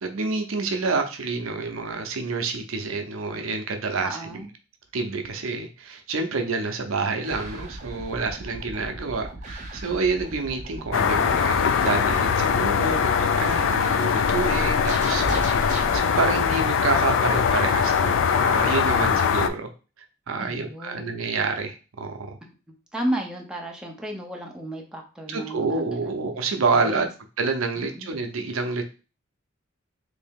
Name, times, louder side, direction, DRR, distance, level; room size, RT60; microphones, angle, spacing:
voice 1, 0.0-4.5 4.9-19.7 20.3-22.4 25.3-27.1 27.4-28.8, right 4 dB, 75° right, 5 dB, 0.6 m, -28 dB
voice 2, 4.0-4.5 20.4-21.2 22.7-26.1 26.7-27.1 27.8-28.1, right 1 dB, 5° right, 0 dB, 0.6 m, -33 dB
sound 1, 7.2-16.0, right 1 dB, 35° right, 0.8 m, -36 dB
sound 2, 10.9-19.5, left 7 dB, 65° left, 0.3 m, -22 dB
3.3 x 2.7 x 3.5 m, 0.33 s
head